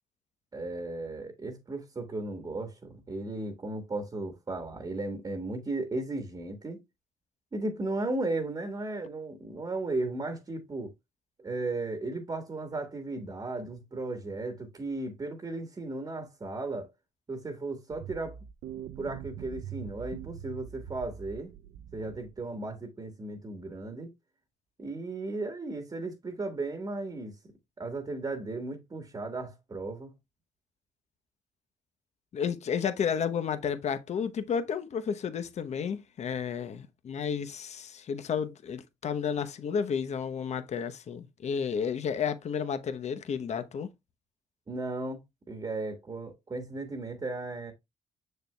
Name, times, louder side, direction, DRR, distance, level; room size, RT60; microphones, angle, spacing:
voice 1, 0.5-6.8 7.5-10.9 11.4-16.9 17.3-18.4 19.0-21.5 21.9-24.1 24.8-27.4 27.8-30.1 44.7-45.2 45.5-47.7, right 2 dB, 30° right, 1.5 m, -35 dB
sound 1, 17.9-22.6, right 10 dB, 80° right, 0.5 m, -43 dB
voice 2, 32.3-43.9, left 7 dB, 55° left, 0.9 m, -32 dB
6.6 x 6.6 x 2.3 m
cardioid pair, 80°, 13 cm